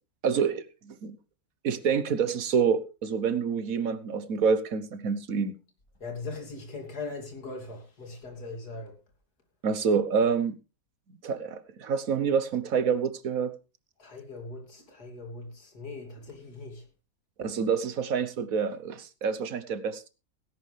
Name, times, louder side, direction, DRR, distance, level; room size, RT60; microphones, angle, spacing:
voice 1, 0.2-1.2 1.6-5.6 9.6-10.6 11.2-13.5 17.4-20.1, right 6 dB, 65° right, 1.5 m, -27 dB
voice 2, 6.0-8.9 14.0-16.8, left 3 dB, 90° left, 3.5 m, -40 dB
17.5 x 11.0 x 3.3 m
omnidirectional pair, 1.6 m